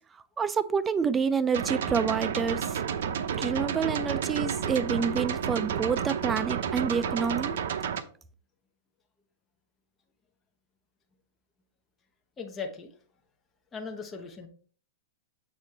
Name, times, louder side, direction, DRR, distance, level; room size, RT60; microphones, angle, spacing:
voice 1, 0.4-2.8 3.4-7.6, right 6 dB, 15° right, 0.4 m, -28 dB
sound 1, 1.5-8.0, right 7 dB, 75° right, 0.7 m, -31 dB
voice 2, 12.4-12.9 13.7-14.5, left 5 dB, 15° left, 1.0 m, -38 dB
7.4 x 4.9 x 3.2 m
supercardioid pair, 155°, 0 cm